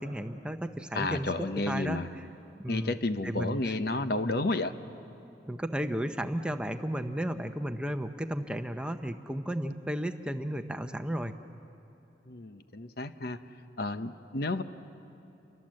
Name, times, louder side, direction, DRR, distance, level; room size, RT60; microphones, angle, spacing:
voice 1, 0.0-1.3 1.7-2.0 2.6-3.0 3.2-3.6 5.5-11.3, equal, 5° right, 7 dB, 0.7 m, -33 dB
voice 2, 0.9-2.1 2.7-4.7 12.3-13.4 13.8-14.6, left 2 dB, 55° left, 10 dB, 0.8 m, -31 dB
29.5 x 23.5 x 7.7 m, 3.0 s
head